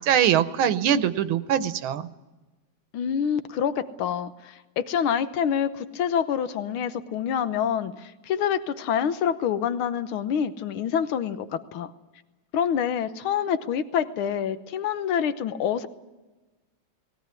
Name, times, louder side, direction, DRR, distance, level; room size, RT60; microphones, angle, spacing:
voice 1, 0.0-2.1, right 9 dB, 80° right, 13 dB, 1.7 m, -22 dB
voice 2, 2.9-11.9 12.5-15.9, left 8 dB, 85° left, 11 dB, 1.8 m, -27 dB
20.0 x 16.5 x 9.6 m, 1.2 s
omnidirectional pair, 2.2 m